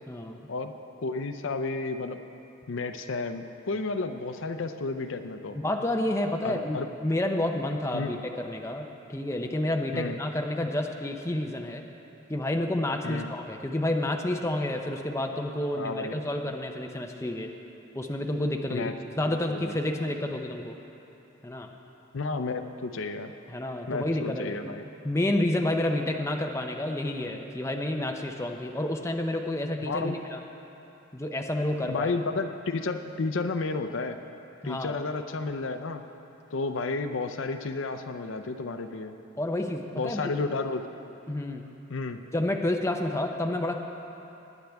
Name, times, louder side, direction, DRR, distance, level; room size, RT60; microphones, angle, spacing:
voice 1, 0.1-0.5 5.5-11.8 12.3-17.5 17.9-20.8 21.4-21.7 23.5-24.7 25.0-30.4 31.1-32.1 34.6-34.9 39.4-40.3 41.3-41.6 42.3-43.8, left 1 dB, 15° left, 2 dB, 0.6 m, -29 dB
voice 2, 1.0-2.2 2.7-5.6 6.4-6.9 7.9-8.2 9.9-10.2 13.0-13.3 15.7-16.2 18.7-18.9 19.3-19.8 22.1-23.3 23.9-24.8 29.8-30.2 31.8-34.2 34.6-36.0 36.5-39.2 39.9-40.9 41.9-42.2, left 3 dB, 70° left, 8 dB, 0.5 m, -32 dB
19.5 x 10.0 x 3.5 m, 2.9 s
head